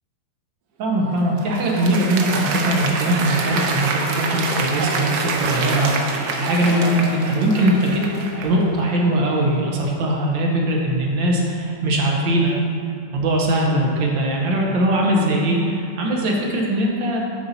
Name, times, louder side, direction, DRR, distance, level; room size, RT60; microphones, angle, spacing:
voice 1, 0.8-8.0 8.3-12.6 13.1-17.2, right 1 dB, 80° right, -1 dB, 1.7 m, -21 dB
Applause, 1.0-8.6, right 3 dB, 65° right, 1.1 m, -26 dB
Accelerating revving vroom, 5.1-11.5 11.8-12.4, left 2 dB, 65° left, 1.4 m, -39 dB
10.0 x 4.1 x 4.1 m, 2.5 s
omnidirectional pair, 2.0 m